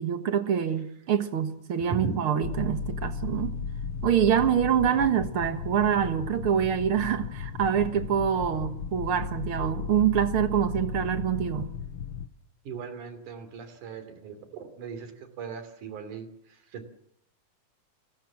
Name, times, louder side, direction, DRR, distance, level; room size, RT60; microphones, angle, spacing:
voice 1, 0.0-3.6 4.0-11.7, right 9 dB, 50° right, 2.0 m, -25 dB
sound 1, 2.4-12.3, left 6 dB, 75° left, 1.1 m, -35 dB
voice 2, 12.7-15.1 15.4-16.3 16.7-16.9, right 5 dB, 70° right, 4.3 m, -38 dB
29.5 x 18.0 x 7.3 m
omnidirectional pair, 3.7 m